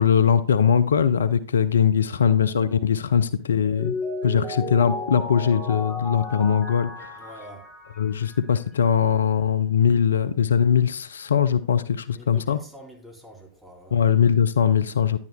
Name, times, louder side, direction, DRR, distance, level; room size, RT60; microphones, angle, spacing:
voice 1, 0.0-3.9 4.2-7.3 8.0-12.6 13.9-15.2, left 7 dB, 70° left, 0.4 m, -21 dB
Mallet percussion, 3.5-8.5, left 2 dB, 10° left, 2.9 m, -34 dB
voice 2, 7.2-7.6 12.1-14.1, right 1 dB, 10° right, 2.8 m, -46 dB
10.5 x 9.6 x 2.2 m
figure-of-eight pair, 90°, 0 cm